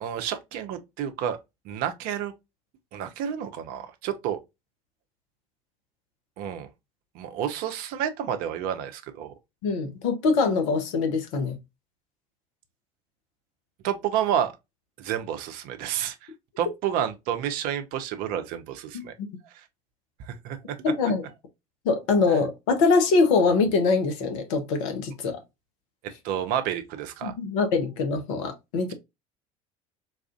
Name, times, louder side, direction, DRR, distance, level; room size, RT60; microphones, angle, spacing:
voice 1, 0.0-1.4 1.6-2.3 2.9-4.4 6.4-6.7 7.1-9.3 13.8-14.5 15.0-16.2 16.6-19.1 19.5-19.6 20.2-20.8 22.3-22.4 26.0-27.3, right 9 dB, 50° right, 0.6 m, -30 dB
voice 2, 9.6-11.6 19.2-19.3 20.8-21.2 21.8-25.4 27.2-28.9, left 4 dB, 60° left, 0.9 m, -23 dB
4.0 x 2.4 x 2.3 m
figure-of-eight pair, 65°, 19 cm